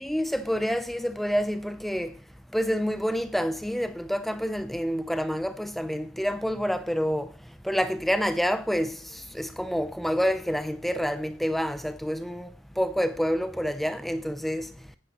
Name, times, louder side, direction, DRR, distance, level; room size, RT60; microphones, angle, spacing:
voice 1, 0.0-2.2 2.5-14.9, equal, ahead, 0.5 m, -28 dB
10.0 x 9.5 x 3.0 m
head